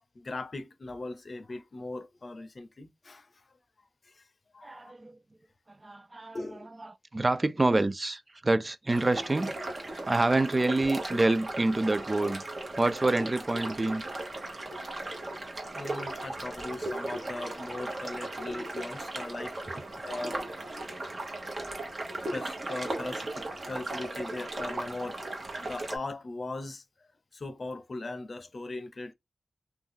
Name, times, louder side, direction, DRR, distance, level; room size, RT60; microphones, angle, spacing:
voice 1, 0.1-3.5 4.0-4.3 4.5-4.9 6.3-6.7 15.7-19.7 20.0-21.0 21.4-21.5 22.3-25.2 25.6-29.1, left 2 dB, 50° left, 0.6 m, -39 dB
voice 2, 4.6-5.1 5.8-6.4 7.1-9.5 10.1-12.5 12.8-14.0, right 2 dB, 30° right, 0.3 m, -27 dB
sound 1, 8.9-26.0, right 2 dB, 50° right, 1.0 m, -37 dB
2.5 x 2.3 x 3.6 m
wide cardioid pair, 85°, 0 cm